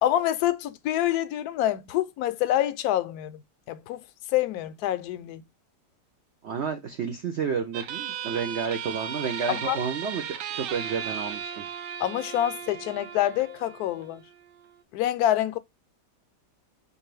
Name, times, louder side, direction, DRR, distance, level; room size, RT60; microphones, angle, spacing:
voice 1, 0.0-3.4 3.7-4.0 4.3-5.4 9.5-9.8 12.0-14.2 14.9-15.6, left 12 dB, 75° left, 1.0 m, -26 dB
voice 2, 6.4-11.6, right 6 dB, 65° right, 0.7 m, -31 dB
sound 1, 7.7-14.8, right 8 dB, 85° right, 1.3 m, -36 dB
4.6 x 2.5 x 3.1 m
omnidirectional pair, 1.8 m